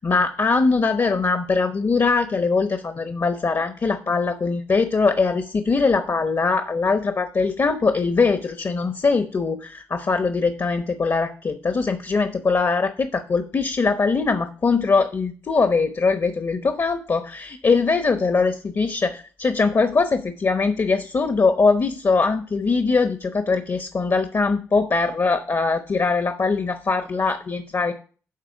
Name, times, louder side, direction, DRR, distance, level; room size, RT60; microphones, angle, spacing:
voice 1, 0.0-27.9, left 4 dB, 45° left, 8 dB, 0.9 m, -21 dB
9.8 x 3.8 x 5.8 m, 0.40 s
hypercardioid pair, 40°, 7 cm